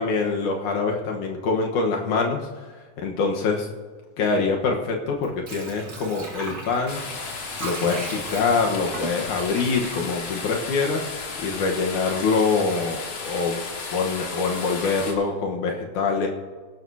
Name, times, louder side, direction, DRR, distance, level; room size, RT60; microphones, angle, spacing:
voice 1, 0.0-2.5 3.0-3.7 4.2-7.0 7.6-11.1 11.4-13.6 13.9-16.3, left 4 dB, 80° left, 1 dB, 2.7 m, -24 dB
Water / Sink (filling or washing), 5.1-10.9 11.3-11.4, right 2 dB, 35° right, 2.3 m, -38 dB
sound 1, 6.9-15.1, left 4 dB, 55° left, 2.7 m, -34 dB
22.5 x 11.5 x 2.8 m, 1.5 s
omnidirectional pair, 3.5 m